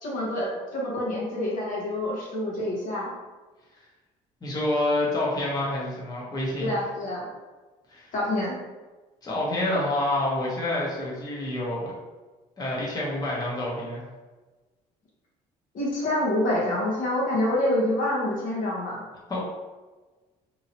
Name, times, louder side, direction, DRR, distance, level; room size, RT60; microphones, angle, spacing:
voice 1, 0.0-3.1 6.6-7.2 8.1-8.6 15.7-19.0, left 1 dB, 60° left, -5 dB, 1.1 m, -27 dB
voice 2, 4.4-6.8 7.9-8.1 9.2-11.9 12.6-14.0 19.3-19.4, left 1 dB, 25° left, -5 dB, 1.0 m, -27 dB
2.9 x 2.7 x 2.8 m, 1.2 s
cardioid pair, 100°, 15 cm